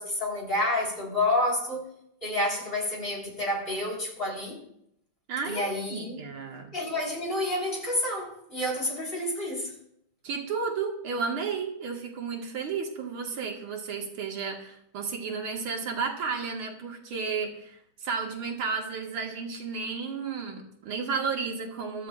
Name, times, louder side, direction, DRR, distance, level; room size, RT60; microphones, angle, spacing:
voice 1, 0.0-1.8 2.2-4.6 5.4-6.2 6.7-9.7, left 1 dB, 25° left, 4.5 m, -29 dB
voice 2, 5.3-6.7 10.2-22.1, right 5 dB, 85° right, 2.6 m, -33 dB
23.0 x 12.5 x 2.5 m
omnidirectional pair, 2.3 m